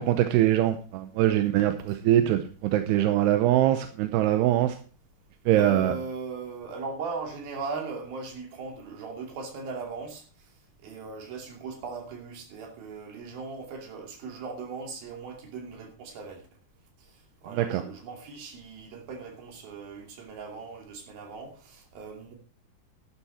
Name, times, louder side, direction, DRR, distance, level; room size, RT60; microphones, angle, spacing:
voice 1, 0.0-4.7 5.5-5.9 17.5-17.8, right 13 dB, 85° right, 8 dB, 2.9 m, -23 dB
voice 2, 5.5-10.2 10.8-16.4 17.4-22.4, right 4 dB, 65° right, 2 dB, 4.5 m, -38 dB
12.0 x 10.5 x 4.3 m, 0.40 s
omnidirectional pair, 4.6 m